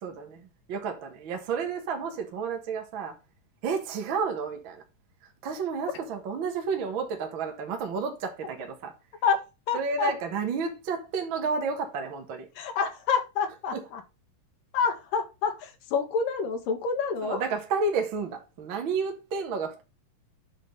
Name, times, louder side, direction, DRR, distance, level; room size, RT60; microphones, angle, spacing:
voice 1, 0.0-3.1 3.6-4.8 5.4-8.9 9.7-12.5 13.7-13.8 17.2-19.8, right 5 dB, 50° right, 1.8 m, -31 dB
voice 2, 9.7-10.1 12.6-14.0 14.7-17.4, left 5 dB, 85° left, 3.1 m, -28 dB
8.1 x 3.9 x 6.5 m
omnidirectional pair, 3.7 m